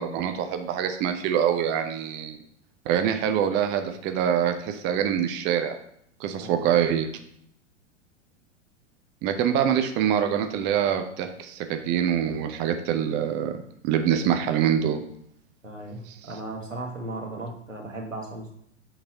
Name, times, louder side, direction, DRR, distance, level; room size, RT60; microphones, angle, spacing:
voice 1, 0.0-2.4 2.9-5.8 6.2-7.1 9.2-13.5 13.8-15.0, right 9 dB, 30° right, 7 dB, 0.6 m, -25 dB
voice 2, 15.6-18.5, right 2 dB, 90° right, 1 dB, 1.5 m, -36 dB
7.7 x 4.1 x 4.4 m, 0.70 s
figure-of-eight pair, 95°, 37 cm